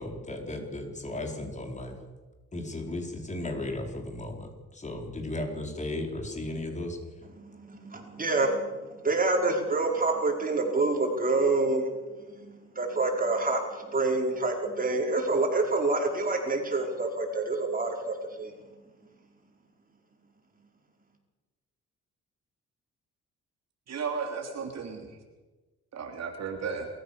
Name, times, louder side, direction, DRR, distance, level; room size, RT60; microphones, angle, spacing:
voice 1, 0.0-2.0 2.5-7.0, left 1 dB, 25° left, 3 dB, 4.7 m, -35 dB
voice 2, 7.3-11.9 12.3-18.5, right 3 dB, 30° right, 2 dB, 5.3 m, -27 dB
voice 3, 23.9-25.1 25.9-26.9, right 5 dB, 60° right, 3 dB, 3.3 m, -34 dB
28.0 x 14.5 x 6.9 m, 1.2 s
cardioid pair, 90°, 30 cm